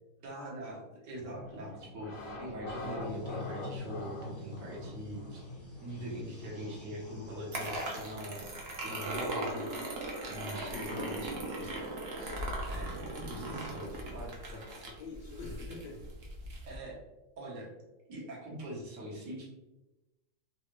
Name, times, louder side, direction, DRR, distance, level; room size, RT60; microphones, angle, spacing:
voice 1, 0.2-5.4 5.8-8.5 8.8-9.7 10.3-11.8 12.2-12.4 12.6-13.0 13.3-14.3 16.6-17.0 17.4-17.7 18.1-19.5, equal, 80° right, -3 dB, 1.6 m, -43 dB
sound 1, 1.1-9.9, left 2 dB, 50° left, 0.8 m, -44 dB
sound 2, 3.0-8.4, left 2 dB, 20° left, 0.3 m, -52 dB
sound 3, 7.5-16.8, right 1 dB, 55° right, 0.7 m, -38 dB
voice 2, 10.6-11.3 14.5-16.0, left 3 dB, 75° left, 2 dB, 1.2 m, -44 dB
3.9 x 2.5 x 2.9 m, 1.0 s
omnidirectional pair, 1.8 m